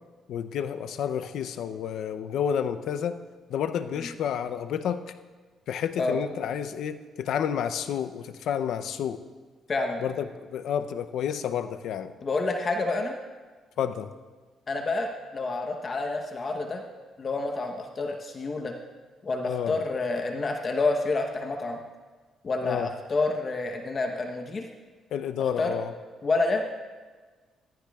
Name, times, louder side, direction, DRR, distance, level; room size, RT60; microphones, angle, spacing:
voice 1, 0.3-3.2 3.5-5.0 5.7-9.2 10.0-12.1 13.8-14.1 19.4-19.8 22.6-22.9 25.1-25.9, left 8 dB, 75° left, 10 dB, 0.5 m, -30 dB
voice 2, 9.7-10.0 12.2-13.1 14.7-16.8 17.2-18.7 19.2-21.8 22.4-24.6 25.6-25.8 26.2-26.6, left 3 dB, 40° left, 3 dB, 0.9 m, -28 dB
15.0 x 13.5 x 2.4 m, 1.4 s
cardioid pair, 90°, 0 cm